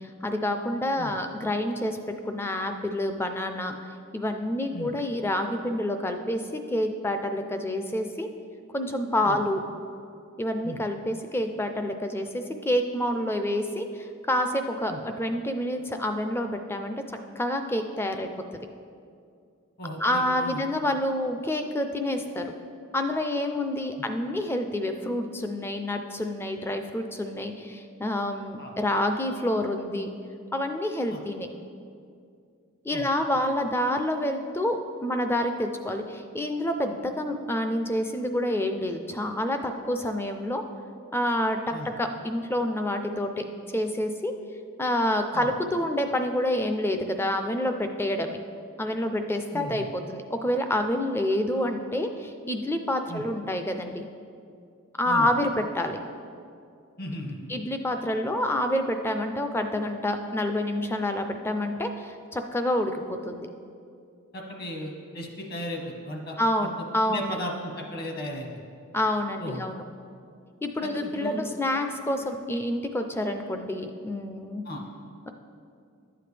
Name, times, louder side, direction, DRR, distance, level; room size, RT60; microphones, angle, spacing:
voice 1, 0.0-2.0 2.2-3.8 4.1-8.3 8.7-9.6 10.4-16.9 17.4-18.3 20.0-22.4 22.9-30.1 30.5-31.5 32.8-40.6 41.1-41.6 42.0-43.5 43.7-44.3 44.8-48.4 48.8-54.0 55.0-56.0 57.5-63.5 66.4-67.4 68.9-69.8 70.6-74.6, left 1 dB, 10° left, 6 dB, 0.4 m, -28 dB
voice 2, 19.8-20.6 24.0-24.1 28.6-28.7 31.1-31.2 32.9-33.1 41.7-41.9 45.3-45.5 49.5-49.9 53.1-53.2 55.1-55.3 57.0-57.5 64.3-66.3 66.6-66.7 67.1-68.5 69.4-69.6 70.8-71.4 74.6-74.8, equal, 45° left, 1 dB, 1.2 m, -36 dB
11.5 x 7.7 x 3.3 m, 2.4 s
head